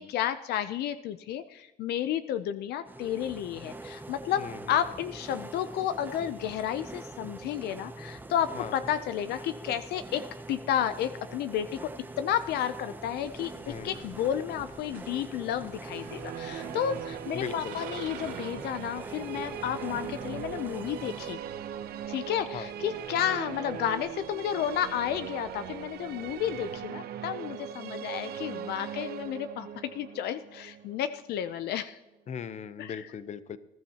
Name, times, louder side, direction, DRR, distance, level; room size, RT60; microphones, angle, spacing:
voice 1, 0.0-11.9 12.2-21.4 22.1-32.0 32.8-33.0, left 10 dB, 70° left, 12 dB, 0.6 m, -32 dB
sound 1, 2.9-21.3, right 2 dB, 10° right, 0.7 m, -44 dB
voice 2, 4.4-4.8 8.5-8.7 13.6-14.0 17.3-17.8 22.5-22.7 32.3-33.6, left 7 dB, 45° left, 14 dB, 0.8 m, -38 dB
sound 2, 13.2-26.8, right 6 dB, 80° right, 2.9 m, -52 dB
sound 3, 15.7-31.8, right 9 dB, 65° right, 0.9 m, -40 dB
20.0 x 12.5 x 2.9 m, 0.97 s
cardioid pair, 110°, 17 cm